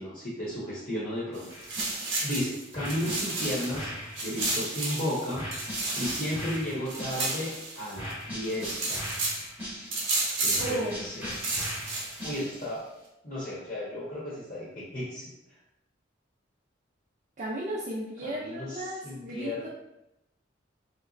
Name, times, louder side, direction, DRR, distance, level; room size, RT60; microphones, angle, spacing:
voice 1, 0.0-1.9 2.2-3.9 4.2-5.4 6.0-9.1 10.4-11.3 12.2-12.9 13.2-15.3 18.2-19.7, left 1 dB, 40° left, -7 dB, 0.8 m, -34 dB
sound 1, 1.3-3.8 4.2-8.1 8.4-9.5 9.9-10.8 11.2-12.4, right 2 dB, 75° right, 0.8 m, -32 dB
sound 2, 1.5-2.3 2.7-5.0 5.3-7.6 7.9-10.2 10.6-12.8, equal, 10° right, 0.8 m, -39 dB
voice 2, 10.5-11.0 17.4-19.7, right 1 dB, 40° right, -6 dB, 0.4 m, -34 dB
3.2 x 2.9 x 2.5 m, 0.87 s
head